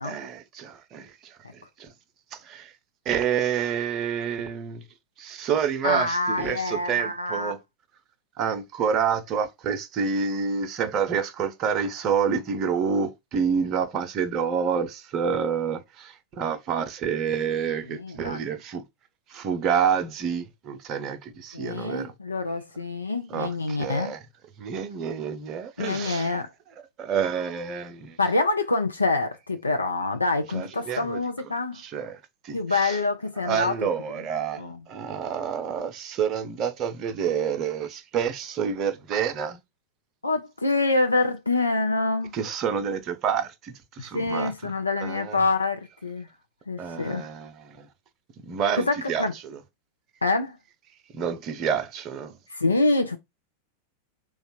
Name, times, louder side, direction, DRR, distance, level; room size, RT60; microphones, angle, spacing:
voice 1, 0.0-1.9 2.3-2.7 3.1-4.8 5.2-7.6 8.4-18.8 19.3-22.1 23.3-24.2 24.6-26.3 27.0-28.2 30.5-31.2 31.7-33.0 33.4-34.6 34.9-39.6 42.3-44.5 45.0-45.4 46.8-47.9 48.4-49.2 51.1-52.4, right 7 dB, 35° right, 0.7 m, -28 dB
voice 2, 5.8-7.5 17.8-18.4 21.5-24.1 25.8-26.5 28.2-31.8 32.5-33.7 34.6-34.8 40.2-42.3 44.0-46.3 46.7-47.3 48.7-49.3 50.2-50.6 52.5-53.2, left 3 dB, 80° left, 0.5 m, -26 dB
3.2 x 2.3 x 4.3 m
figure-of-eight pair, 90°, 0 cm